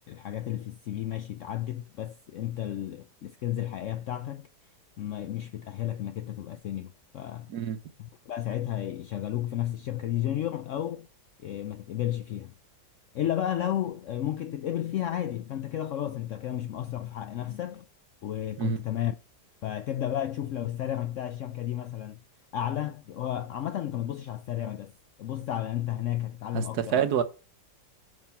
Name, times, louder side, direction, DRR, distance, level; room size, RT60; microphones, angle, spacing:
voice 1, 0.1-4.5 5.0-7.5 8.0-11.1 11.4-12.5 13.1-17.9 18.2-19.1 19.6-22.2 22.5-24.9 25.2-27.0, left 12 dB, 75° left, 0.7 m, -32 dB
voice 2, 26.5-27.2, right 9 dB, 70° right, 1.4 m, -27 dB
9.8 x 5.4 x 4.4 m
omnidirectional pair, 1.8 m